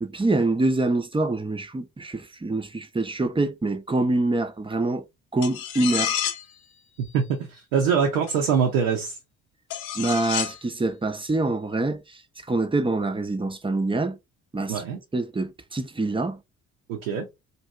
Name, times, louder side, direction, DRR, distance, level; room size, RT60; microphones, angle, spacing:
voice 1, 0.0-5.0 5.3-6.1 10.0-12.2 12.5-14.2 14.5-14.8 15.1-16.4, right 2 dB, 15° right, 0.6 m, -25 dB
sound 1, 5.4-6.5 8.3-8.4 9.7-10.6, left 9 dB, 65° left, 0.7 m, -29 dB
voice 2, 7.7-9.1 14.7-15.0 16.9-17.3, right 6 dB, 85° right, 0.7 m, -23 dB
2.7 x 2.5 x 3.1 m
hypercardioid pair, 45°, 38 cm